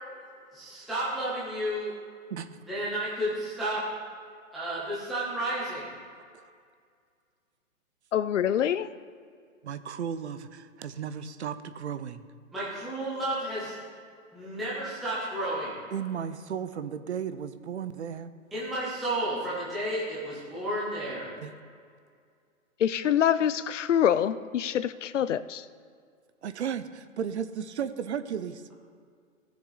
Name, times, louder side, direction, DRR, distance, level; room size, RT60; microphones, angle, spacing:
voice 1, 0.5-1.9 2.7-3.8 4.5-5.9 12.5-13.8 14.3-15.8 18.5-21.3, right 1 dB, ahead, -10 dB, 0.6 m, -32 dB
voice 2, 8.1-8.9 22.8-25.6, left 9 dB, 60° left, 15 dB, 0.6 m, -25 dB
voice 3, 9.6-12.2 15.9-18.3 21.4-21.6 26.4-28.6, right 8 dB, 55° right, 12 dB, 0.8 m, -34 dB
18.5 x 7.0 x 4.0 m, 2.1 s
hypercardioid pair, 160°, 41 cm